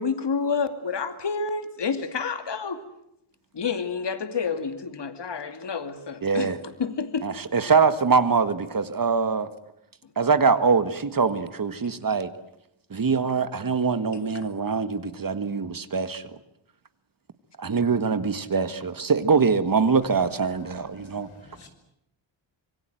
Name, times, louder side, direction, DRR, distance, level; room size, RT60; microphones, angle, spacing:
voice 1, 0.0-2.8 3.5-6.5 6.8-7.3, left 5 dB, 60° left, 2.6 m, -29 dB
voice 2, 6.2-6.6 7.2-9.5 10.2-12.3 12.9-16.2 17.6-21.3, right 5 dB, 45° right, 1.7 m, -23 dB
voice 3, 20.6-21.7, left 3 dB, 85° left, 5.5 m, -51 dB
26.0 x 23.5 x 9.2 m
wide cardioid pair, 130°, 48 cm